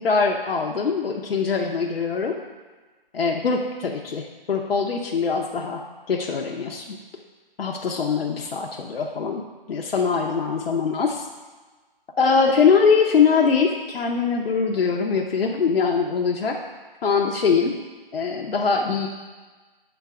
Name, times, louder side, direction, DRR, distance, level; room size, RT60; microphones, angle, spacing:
voice 1, 0.0-2.4 3.1-5.8 6.1-7.0 7.6-9.4 9.7-11.2 12.2-16.6 17.0-17.7 18.1-19.1, left 5 dB, 80° left, 1 dB, 0.6 m, -22 dB
6.8 x 3.9 x 3.6 m, 1.3 s
hypercardioid pair, 155°, 29 cm